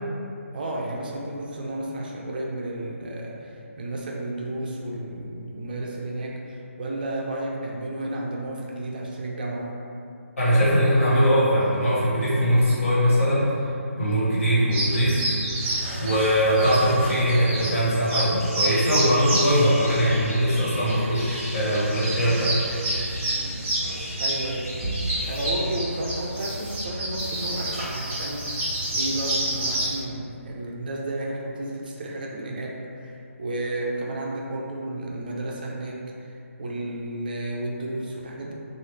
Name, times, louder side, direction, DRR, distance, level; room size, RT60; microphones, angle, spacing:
voice 1, 0.5-9.8 24.2-24.7 25.2-38.5, right 1 dB, 40° right, -2 dB, 0.4 m, -32 dB
voice 2, 10.4-13.5 14.0-15.3 15.6-15.7 16.0-22.6, equal, 65° left, -10 dB, 1.5 m, -21 dB
sound 1, 14.7-29.9, right 1 dB, 20° right, 0.9 m, -29 dB
sound 2, 18.4-25.8, equal, 85° left, 1.2 m, -37 dB
sound 3, 25.2-25.4 26.3-26.8 27.1-30.0, equal, 15° left, 1.0 m, -49 dB
3.0 x 2.4 x 3.2 m, 2.6 s
figure-of-eight pair, 150°, 8 cm